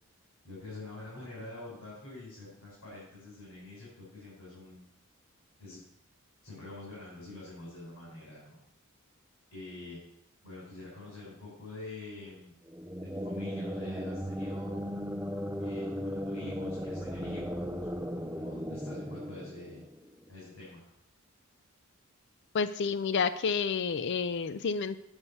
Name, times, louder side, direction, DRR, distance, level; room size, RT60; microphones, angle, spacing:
voice 1, 0.4-4.8 5.6-5.8 6.4-8.6 9.5-10.0 10.4-12.5 13.1-15.0 15.6-19.8 20.3-20.9, left 2 dB, 70° left, -7 dB, 5.0 m, -46 dB
sound 1, 12.7-20.3, equal, 10° right, 0.6 m, -36 dB
voice 2, 22.5-25.0, left 5 dB, 55° left, 11 dB, 0.4 m, -30 dB
9.8 x 5.3 x 7.1 m, 0.75 s
head